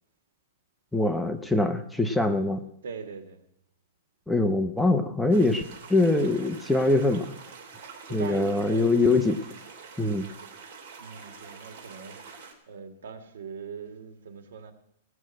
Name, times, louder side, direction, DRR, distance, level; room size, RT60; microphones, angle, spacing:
voice 1, 0.9-2.6 4.3-5.6 5.9-7.3 8.1-9.4 10.0-10.3, left 2 dB, ahead, 7 dB, 0.6 m, -23 dB
voice 2, 2.8-3.4 8.0-9.1 11.0-12.2 12.7-14.7, right 6 dB, 85° right, 7 dB, 2.1 m, -41 dB
sound 1, 5.3-12.5, right 5 dB, 50° right, 2.8 m, -46 dB
18.5 x 6.4 x 7.6 m, 0.77 s
supercardioid pair, 165°, 0 cm